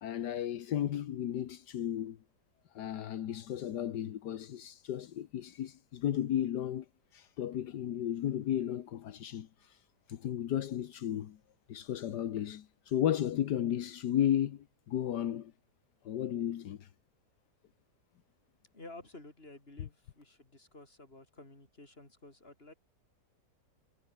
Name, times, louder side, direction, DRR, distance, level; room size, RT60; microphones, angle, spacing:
voice 1, 0.0-2.2 2.7-6.8 7.1-9.8 10.1-11.4 11.7-15.5 16.0-16.9, left 10 dB, 80° left, 1.6 m, -34 dB
voice 2, 18.7-22.7, left 2 dB, 35° left, 5.1 m, -52 dB
omnidirectional pair, 1.8 m